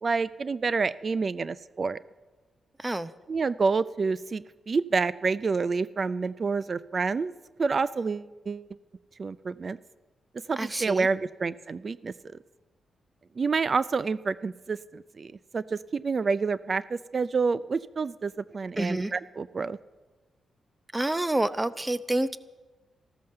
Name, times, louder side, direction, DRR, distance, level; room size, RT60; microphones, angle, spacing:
voice 1, 0.0-2.0 3.3-7.3 7.6-8.7 9.2-9.8 10.5-12.1 13.4-19.8, right 4 dB, 45° right, 17 dB, 0.4 m, -28 dB
voice 2, 2.8-3.1 10.6-11.1 18.8-19.1 20.9-22.4, right 1 dB, 15° right, 14 dB, 0.7 m, -28 dB
14.0 x 13.5 x 6.6 m, 1.2 s
cardioid pair, 75°, 0 cm